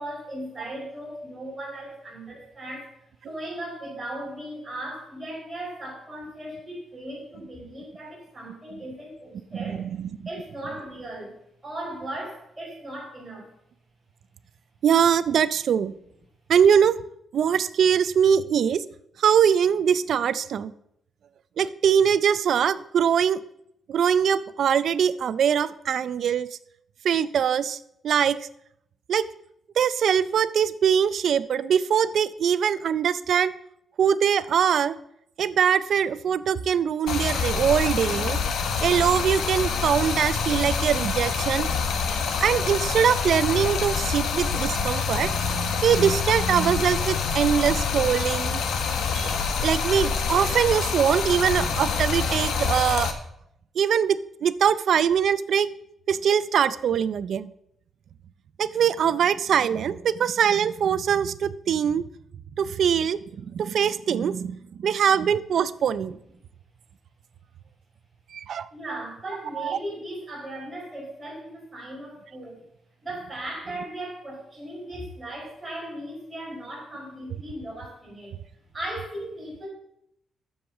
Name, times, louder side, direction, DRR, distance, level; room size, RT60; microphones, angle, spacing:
voice 1, 0.0-2.9 3.2-11.3 11.6-13.5 68.7-72.6 73.0-78.3 78.7-79.7, right 1 dB, 10° right, -5 dB, 4.6 m, -37 dB
voice 2, 9.6-10.2 14.8-15.9 16.5-17.0 17.3-18.8 19.2-20.7 21.6-23.4 23.9-26.5 27.0-27.8 28.0-28.4 29.1-29.3 29.8-33.5 34.0-35.0 35.4-38.4 38.8-41.7 42.4-48.6 49.1-53.1 53.8-55.7 56.1-57.5 58.6-62.0 62.6-66.2 68.3-69.0 69.6-69.8, right 8 dB, 55° right, 16 dB, 0.4 m, -22 dB
Stream, 37.1-53.1, left 5 dB, 70° left, 1.2 m, -26 dB
7.8 x 7.2 x 7.1 m, 0.76 s
wide cardioid pair, 175°, 0 cm